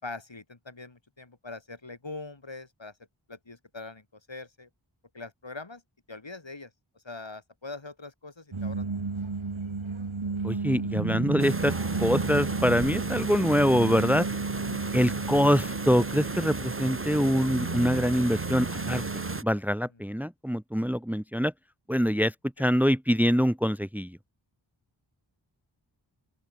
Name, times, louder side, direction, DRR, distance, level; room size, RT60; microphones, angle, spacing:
voice 1, 0.0-2.9 3.3-4.7 5.1-5.8 6.1-6.7 7.0-8.9 14.6-14.9 15.4-15.5, left 3 dB, 70° left, 5.3 m, -42 dB
sound 1, 8.5-19.4, right 4 dB, 85° right, 3.0 m, -32 dB
voice 2, 10.4-14.3 14.9-19.0 19.4-21.5 21.9-24.2, equal, 5° right, 1.2 m, -25 dB
sound 2, 11.4-19.4, right 3 dB, 25° right, 1.3 m, -36 dB
open air
wide cardioid pair, 40°, 46 cm